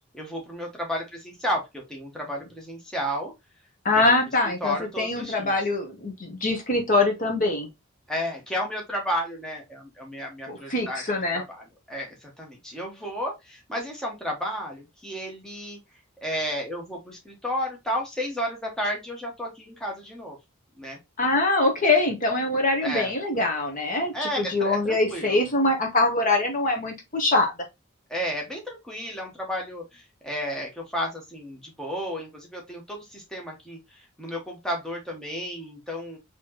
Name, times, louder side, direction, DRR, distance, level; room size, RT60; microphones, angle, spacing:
voice 1, 0.1-3.3 4.0-4.1 4.6-5.6 8.1-11.0 11.3-15.8 16.2-20.4 20.8-21.0 22.8-23.1 24.1-25.4 28.1-36.2, equal, 5° left, 1.0 m, -32 dB
voice 2, 3.8-7.7 10.5-11.4 21.2-27.5, left 2 dB, 40° left, 0.9 m, -23 dB
4.1 x 2.9 x 2.9 m
head